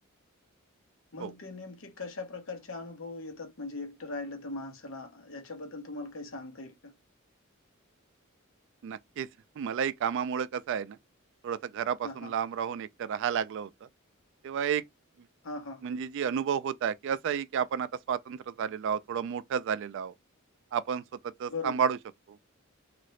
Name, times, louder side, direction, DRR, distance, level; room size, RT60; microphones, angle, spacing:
voice 1, 1.1-6.9 12.0-12.3 15.4-15.8 21.5-21.9, left 3 dB, 65° left, 0.9 m, -40 dB
voice 2, 8.8-9.3 9.6-11.0 11.4-13.9 14.4-14.8 15.8-20.1 20.7-22.0 22.3-22.4, right 7 dB, 60° right, 0.3 m, -31 dB
2.7 x 2.5 x 3.1 m
head